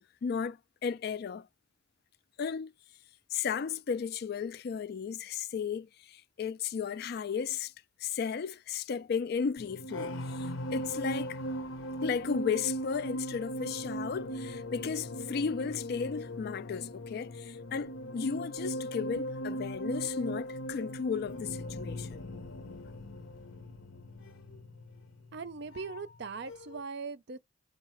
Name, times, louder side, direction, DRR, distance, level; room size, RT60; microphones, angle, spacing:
voice 1, 0.0-1.5 2.4-2.7 3.3-7.7 8.0-11.4 12.0-22.2, left 6 dB, 50° left, 0.3 m, -34 dB
sound 1, 9.6-26.2 26.5-26.8, equal, 75° left, 0.8 m, -39 dB
voice 2, 25.3-27.4, right 4 dB, 55° right, 0.5 m, -40 dB
4.8 x 2.3 x 4.4 m
head